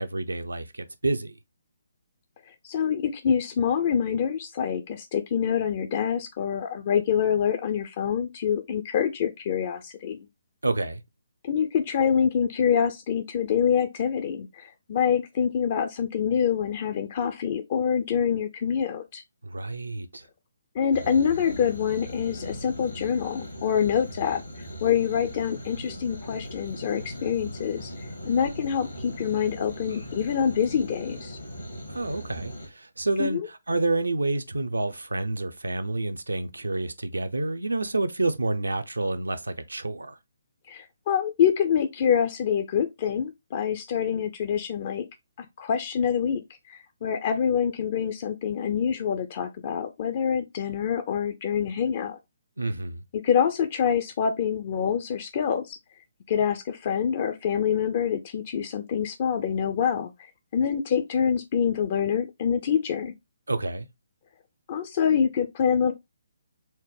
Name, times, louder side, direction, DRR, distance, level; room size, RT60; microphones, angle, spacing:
voice 1, 0.0-1.4 10.6-11.0 19.4-20.3 31.9-40.2 52.6-53.0 63.5-63.9, right 2 dB, 75° right, 0.5 m, -29 dB
voice 2, 2.6-10.2 11.4-19.2 20.7-27.9 28.2-31.4 33.2-33.4 40.7-45.1 45.4-46.4 46.7-52.2 53.1-55.8 56.3-63.1 64.7-65.9, left 7 dB, 40° left, 0.4 m, -26 dB
sound 1, 20.9-32.7, equal, 80° left, 1.5 m, -39 dB
4.2 x 2.1 x 3.2 m
figure-of-eight pair, 135°, 0 cm